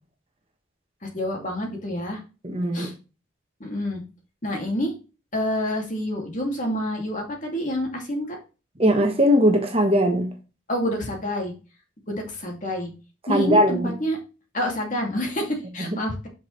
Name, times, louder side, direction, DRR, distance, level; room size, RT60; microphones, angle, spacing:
voice 1, 1.0-2.2 2.7-2.9 3.6-4.0 4.4-4.9 5.3-8.4 10.7-11.5 12.1-12.9 13.3-14.2 14.5-16.3, equal, 40° left, 2.6 m, -28 dB
voice 2, 2.4-2.9 8.8-10.3 13.3-13.9 15.8-15.9, equal, 30° right, 1.3 m, -20 dB
8.3 x 6.1 x 3.3 m
head